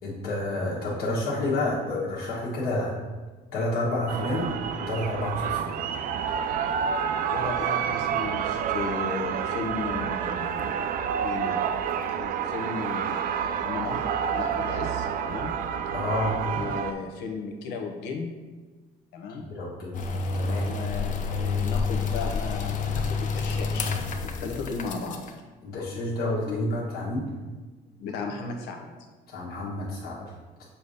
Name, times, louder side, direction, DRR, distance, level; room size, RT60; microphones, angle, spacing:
voice 1, 0.0-2.9 3.5-5.7 15.9-16.4 19.4-20.0 20.3-20.7 25.6-27.3 29.3-30.2, left 1 dB, 65° left, -6 dB, 1.4 m, -29 dB
sound 1, 4.1-16.9, right 8 dB, 55° right, 0.4 m, -29 dB
voice 2, 7.3-15.5 16.6-18.4 19.1-19.6 20.6-24.0 24.4-25.3 25.9-26.1 26.5-26.7 28.0-28.9, left 4 dB, 90° left, 3 dB, 0.8 m, -35 dB
sound 2, 19.9-25.3, left 4 dB, 50° left, 0.6 m, -29 dB
sound 3, 20.0-25.2, equal, 25° left, 1.2 m, -46 dB
6.9 x 2.7 x 4.9 m, 1.3 s
cardioid pair, 110°, 17 cm